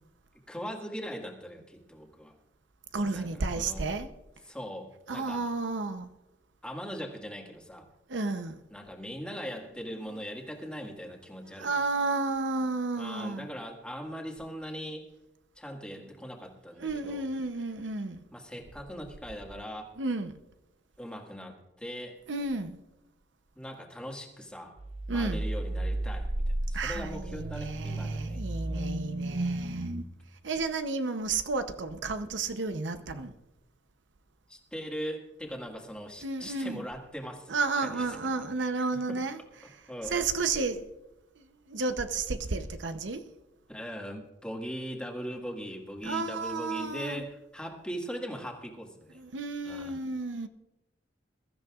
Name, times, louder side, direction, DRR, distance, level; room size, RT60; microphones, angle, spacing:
voice 1, 0.5-2.3 3.1-3.9 4.5-5.5 6.6-7.9 8.7-11.7 13.0-15.1 15.6-17.3 18.3-19.9 21.0-22.2 23.6-24.7 25.1-28.4 28.7-29.2 34.5-39.2 39.9-40.3 43.7-49.2 49.6-50.0, equal, 5° left, 1.8 m, -40 dB
voice 2, 2.9-4.1 5.1-6.1 8.1-8.6 11.6-13.5 16.8-18.2 20.0-20.3 22.3-22.8 25.1-25.5 26.7-29.9 30.4-33.3 36.2-36.8 37.5-39.4 40.1-40.9 41.7-43.2 46.0-47.2 49.2-50.5, right 3 dB, 75° right, 0.8 m, -32 dB
sound 1, 24.8-30.0, right 1 dB, 35° right, 0.7 m, -33 dB
22.0 x 13.5 x 2.5 m
head